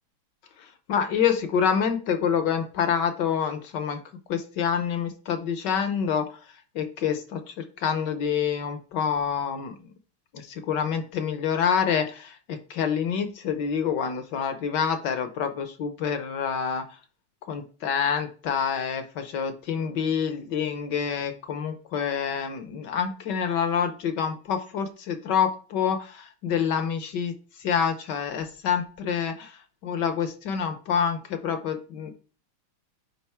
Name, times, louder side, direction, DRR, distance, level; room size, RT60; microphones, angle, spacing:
voice 1, 0.6-4.0 4.3-6.4 6.7-9.8 10.3-16.8 17.5-29.5 29.8-32.1, left 7 dB, 65° left, 8 dB, 1.3 m, -27 dB
8.6 x 5.1 x 3.5 m, 0.37 s
omnidirectional pair, 2.4 m